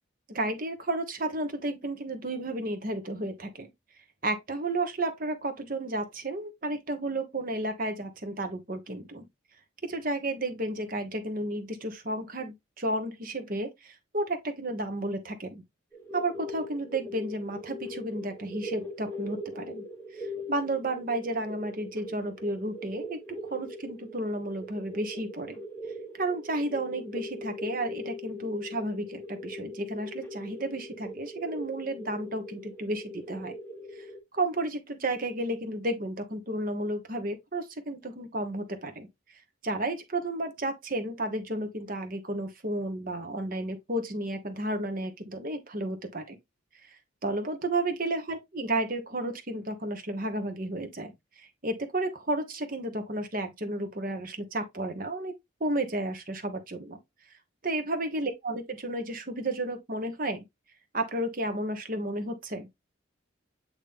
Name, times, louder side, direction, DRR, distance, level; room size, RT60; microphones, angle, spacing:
voice 1, 0.3-3.7 4.2-9.3 9.8-15.6 16.1-19.8 20.1-23.2 23.5-25.6 26.1-33.5 33.9-34.1 34.3-39.1 39.6-46.4 46.8-46.9 47.2-55.3 55.6-57.0 57.6-60.4 60.9-62.7, right 1 dB, 45° right, 1.1 m, -32 dB
sound 1, 15.9-34.2, left 1 dB, 10° left, 1.3 m, -41 dB
8.6 x 3.0 x 3.7 m
head